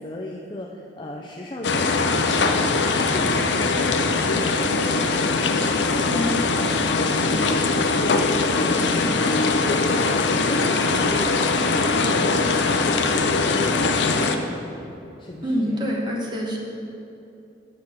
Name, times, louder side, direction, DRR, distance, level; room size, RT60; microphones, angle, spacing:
voice 1, 0.0-5.3 5.7-9.4 9.7-14.5 15.2-15.8, left 1 dB, 25° left, -1 dB, 0.4 m, -36 dB
sound 1, 1.6-14.4, left 3 dB, 70° left, 0.6 m, -21 dB
voice 2, 6.0-6.4 15.4-16.6, equal, 25° right, -2 dB, 1.1 m, -26 dB
8.7 x 6.2 x 5.7 m, 2.8 s
head